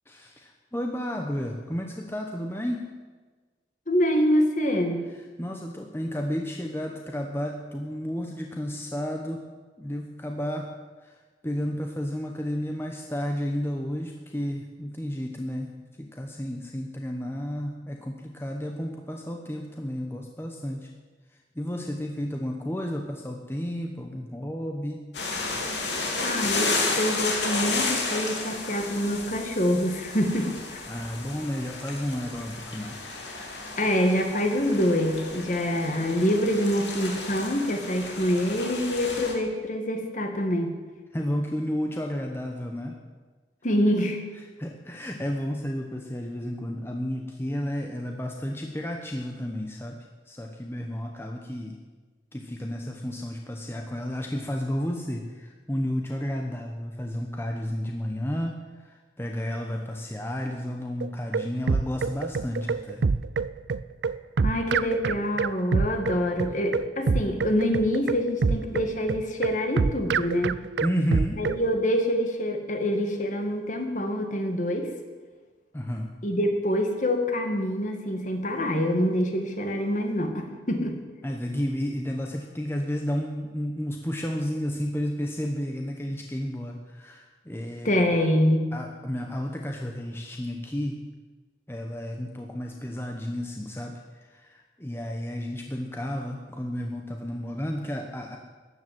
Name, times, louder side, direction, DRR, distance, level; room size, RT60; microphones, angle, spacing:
voice 1, 0.1-2.8 5.4-9.4 9.8-10.7 11.0-11.2 11.4-15.7 16.0-20.9 21.5-25.0 30.9-33.0 41.1-43.0 44.6-50.0 50.3-51.8 52.3-63.0 70.8-71.4 75.7-76.1 81.2-88.2 88.7-91.0 91.7-98.4, equal, 15° left, 2 dB, 1.0 m, -32 dB
voice 2, 3.9-5.1 26.2-30.9 33.8-40.7 43.6-44.2 64.4-70.6 71.4-74.9 76.2-81.0 87.8-88.7, equal, 45° left, 4 dB, 2.1 m, -25 dB
sound 1, 25.1-39.3, left 3 dB, 80° left, 3.1 m, -32 dB
sound 2, 61.0-71.6, right 4 dB, 75° right, 0.5 m, -26 dB
14.0 x 10.5 x 7.8 m, 1.3 s
head